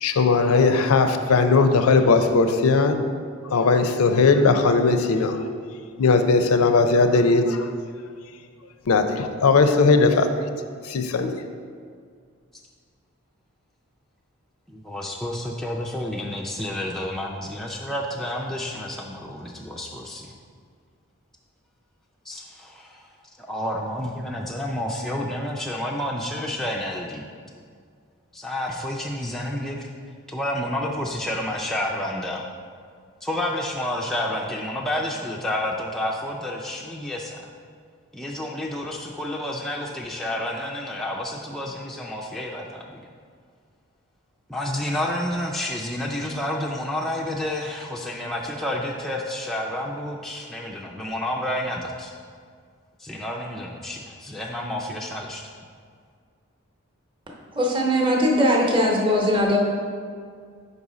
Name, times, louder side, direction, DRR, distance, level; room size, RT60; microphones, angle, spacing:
voice 1, 0.0-3.0 3.5-5.4 6.0-7.6 8.9-10.3 10.9-11.3, left 4 dB, 85° left, 8 dB, 0.5 m, -18 dB
voice 2, 14.7-20.3 22.3-27.3 28.3-29.9 30.3-32.4 33.2-37.5 38.1-43.0 44.5-52.1 53.0-55.4, left 1 dB, ahead, -2 dB, 0.3 m, -30 dB
voice 3, 57.5-59.6, equal, 25° right, -1 dB, 0.8 m, -20 dB
5.4 x 4.1 x 4.8 m, 2.1 s
head